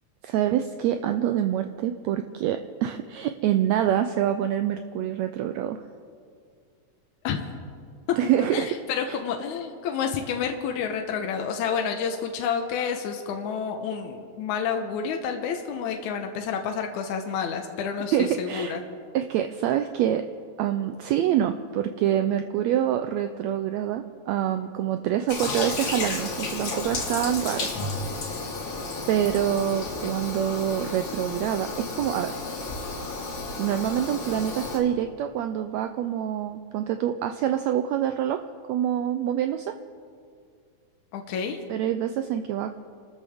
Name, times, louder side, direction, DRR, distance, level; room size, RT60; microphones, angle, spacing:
voice 1, 0.2-5.8 8.2-8.7 9.1-9.2 18.1-18.8 19.1-20.2 20.6-27.7 28.2-28.5 29.1-32.4 33.6-39.7 41.7-42.8, right 10 dB, 80° right, 7 dB, 1.6 m, -26 dB
voice 2, 8.1-18.8 30.0-30.1 41.1-41.6, left 6 dB, 75° left, 4 dB, 2.3 m, -29 dB
Toilet flush, 25.3-34.8, left 3 dB, 50° left, 3.0 m, -32 dB
28.5 x 13.5 x 3.6 m, 2.3 s
omnidirectional pair, 3.5 m